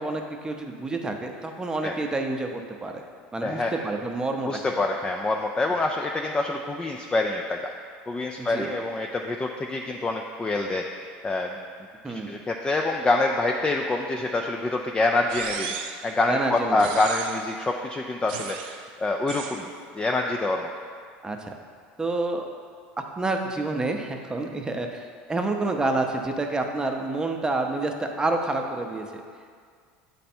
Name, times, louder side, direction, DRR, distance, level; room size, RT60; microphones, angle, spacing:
voice 1, 0.0-3.0 3.3-4.5 8.4-8.7 12.0-12.3 16.3-17.0 21.2-21.5 22.0-22.5 23.2-25.0 25.3-29.2, right 2 dB, 15° right, 3 dB, 0.7 m, -28 dB
voice 2, 3.4-3.7 4.5-7.6 8.1-10.8 11.2-11.5 12.1-20.7, left 2 dB, 15° left, 2 dB, 0.4 m, -26 dB
sound 1, 15.3-16.1 16.8-17.5 18.3-18.8 19.3-19.7, right 8 dB, 75° right, 0.4 m, -36 dB
8.2 x 3.4 x 4.3 m, 2.1 s
hypercardioid pair, 90°, 5 cm